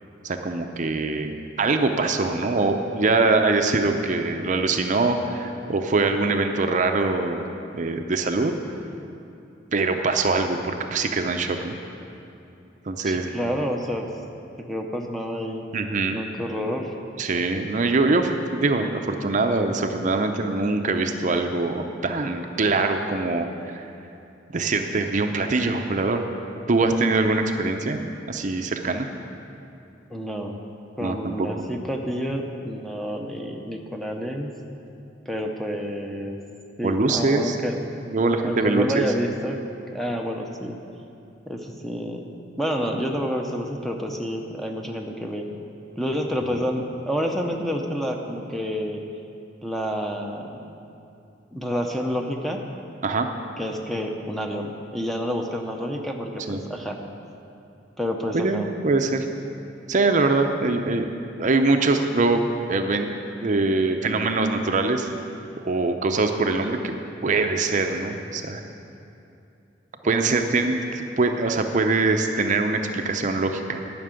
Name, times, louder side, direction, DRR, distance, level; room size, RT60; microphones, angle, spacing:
voice 1, 0.2-7.4 7.7-8.5 9.7-11.7 12.9-13.3 15.7-16.2 17.2-23.5 23.7-23.8 24.5-26.2 26.7-28.0 28.3-29.1 31.0-31.5 36.8-37.6 38.1-39.0 53.0-53.3 56.5-56.6 58.3-59.3 59.9-61.1 61.4-62.4 62.7-63.1 63.4-65.1 65.6-66.9 67.2-68.6 70.0-73.8, right 3 dB, 40° right, 5 dB, 0.6 m, -23 dB
voice 2, 13.0-14.1 14.6-15.7 16.1-16.9 30.1-30.6 31.0-34.5 35.3-36.4 36.8-37.8 38.4-39.6 39.9-40.8 41.5-42.2 42.6-45.5 46.0-49.0 49.6-50.7 51.5-52.6 53.6-57.0 58.0-58.7 70.1-70.5, equal, ahead, 2 dB, 0.7 m, -29 dB
11.0 x 6.0 x 8.9 m, 2.7 s
head